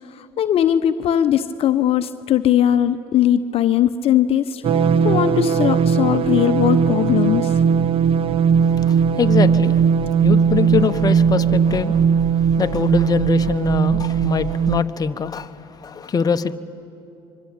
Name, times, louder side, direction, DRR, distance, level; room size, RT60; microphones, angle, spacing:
voice 1, 0.1-7.6, left 10 dB, 55° left, 0.8 m, -19 dB
sound 1, 4.6-14.8, right 7 dB, 50° right, 0.8 m, -18 dB
voice 2, 8.6-9.8 10.2-12.0 12.6-16.5, left 6 dB, 35° left, 1.0 m, -23 dB
25.5 x 23.5 x 8.8 m
supercardioid pair, 75°, 12 cm